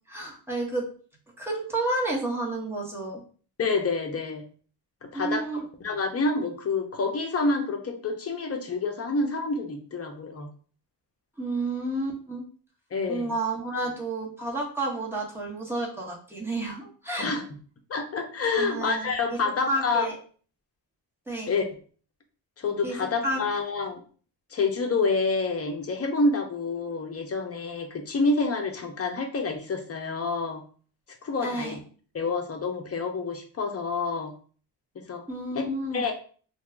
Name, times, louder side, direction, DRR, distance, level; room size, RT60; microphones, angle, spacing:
voice 1, 0.1-0.9 1.4-3.2 5.1-5.6 11.4-12.4 13.1-17.3 18.5-19.4 19.7-20.1 21.3-21.5 22.8-22.9 23.2-23.4 31.4-31.8 35.3-36.1, right 2 dB, 5° right, -3 dB, 1.1 m, -30 dB
voice 2, 3.6-4.4 5.0-5.5 5.8-10.5 12.9-13.3 17.2-17.4 17.9-20.1 21.5-21.6 22.6-24.0 24.5-30.6 31.2-31.8 32.1-34.3 34.9-35.2 35.5-35.7 35.9-36.1, left 3 dB, 35° left, 4 dB, 0.7 m, -28 dB
2.7 x 2.3 x 3.4 m, 0.42 s
cardioid pair, 105°, 42 cm